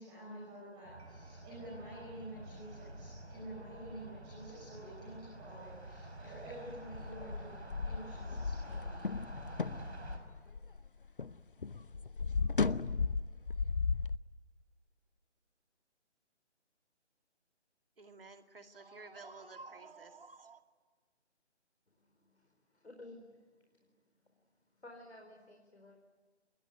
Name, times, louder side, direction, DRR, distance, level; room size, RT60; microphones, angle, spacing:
voice 1, 0.0-9.0, right 1 dB, 10° right, 5.5 m, -49 dB
sound 1, 0.8-10.2, right 1 dB, 70° right, 6.2 m, -49 dB
sound 2, 6.9-11.4 11.6-14.2, left 4 dB, 50° left, 0.7 m, -35 dB
voice 2, 18.0-20.6, right 3 dB, 50° right, 2.4 m, -52 dB
voice 3, 22.8-23.2 24.8-26.0, left 2 dB, 65° left, 4.6 m, -52 dB
27.5 x 21.5 x 9.5 m
figure-of-eight pair, 150°, 35 cm